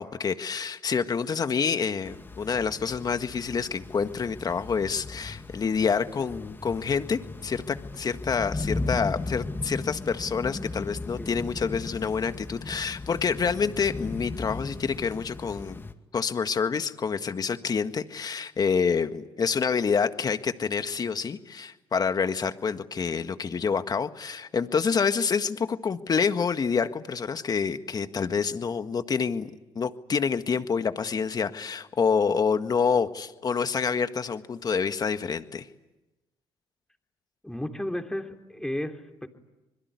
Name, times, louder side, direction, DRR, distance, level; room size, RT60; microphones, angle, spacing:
voice 1, 0.0-15.8 16.1-29.5 29.8-35.7, left 6 dB, 40° left, 9 dB, 1.7 m, -27 dB
sound 1, 2.0-15.9, left 2 dB, 20° left, 2.4 m, -37 dB
voice 2, 11.2-11.5 37.4-39.3, left 1 dB, 5° left, 4 dB, 3.3 m, -34 dB
25.5 x 22.0 x 9.7 m, 1.0 s
supercardioid pair, 70°, 10 cm